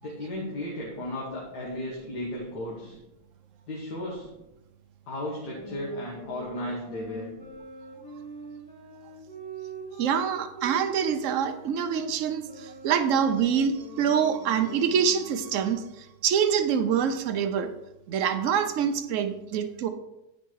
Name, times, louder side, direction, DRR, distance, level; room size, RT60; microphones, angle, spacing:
voice 1, 0.0-3.0 3.7-4.3 5.1-7.3, left 1 dB, 75° left, -4 dB, 2.0 m, -35 dB
sound 1, 5.5-15.5, right 2 dB, 35° left, 2.7 m, -43 dB
voice 2, 10.0-17.7 18.1-19.9, right 7 dB, 60° right, 8 dB, 0.9 m, -25 dB
9.1 x 5.3 x 4.6 m, 0.94 s
omnidirectional pair, 1.7 m